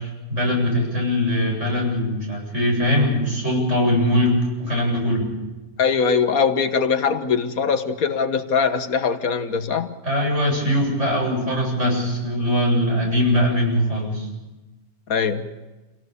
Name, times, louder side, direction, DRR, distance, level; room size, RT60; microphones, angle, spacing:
voice 1, 0.0-4.3 4.6-5.3 10.0-14.3, left 1 dB, 55° right, -1 dB, 8.6 m, -21 dB
voice 2, 5.8-9.9 15.1-15.5, left 6 dB, 75° left, 9 dB, 1.7 m, -21 dB
28.5 x 18.0 x 6.9 m, 1.1 s
omnidirectional pair, 1.5 m